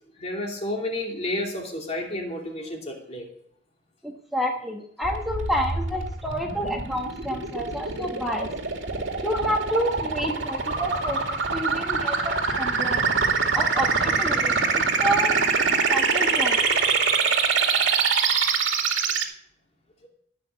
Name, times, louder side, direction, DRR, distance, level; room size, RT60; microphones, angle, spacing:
voice 1, 0.2-3.3, left 1 dB, 35° left, 1 dB, 2.8 m, -31 dB
voice 2, 4.0-8.5 9.2-13.1 13.5-15.4 15.9-16.6, equal, ahead, 0 dB, 1.4 m, -29 dB
sound 1, 5.0-19.2, right 5 dB, 85° right, 2.3 m, -24 dB
17.5 x 6.1 x 8.3 m, 0.69 s
head